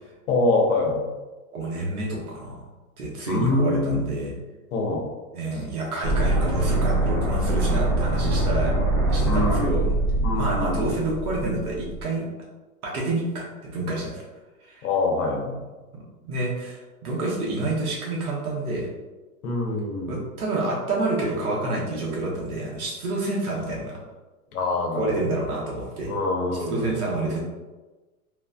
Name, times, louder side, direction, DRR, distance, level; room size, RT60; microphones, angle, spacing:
voice 1, 0.3-1.0 3.3-4.1 4.7-5.1 5.5-5.6 9.3-9.8 10.2-10.9 14.8-15.6 19.4-20.2 24.5-25.3 26.1-26.9, left 2 dB, 80° left, 1 dB, 0.9 m, -25 dB
voice 2, 1.5-2.7 3.0-4.3 5.3-8.7 9.1-9.9 10.3-12.2 12.8-14.2 14.6-14.9 15.9-18.9 20.1-24.0 24.9-26.1 26.5-27.4, right 2 dB, 85° right, -3 dB, 1.2 m, -28 dB
sound 1, 6.0-12.0, right 2 dB, 35° right, 0.7 m, -23 dB
3.2 x 2.5 x 2.2 m, 1.2 s
hypercardioid pair, 125°, 43 cm